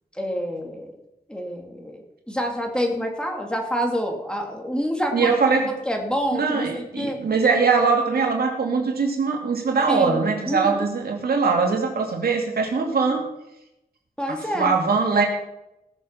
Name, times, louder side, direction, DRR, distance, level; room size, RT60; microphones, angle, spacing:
voice 1, 0.2-0.9 1.3-5.3 5.9-7.2 9.9-10.1 10.5-10.8 14.2-14.8, equal, 5° left, 2 dB, 2.6 m, -27 dB
voice 2, 5.1-5.7 6.3-13.2 14.3-15.2, right 4 dB, 90° right, 2 dB, 2.6 m, -22 dB
19.0 x 6.9 x 5.9 m, 0.88 s
wide cardioid pair, 100°, 16 cm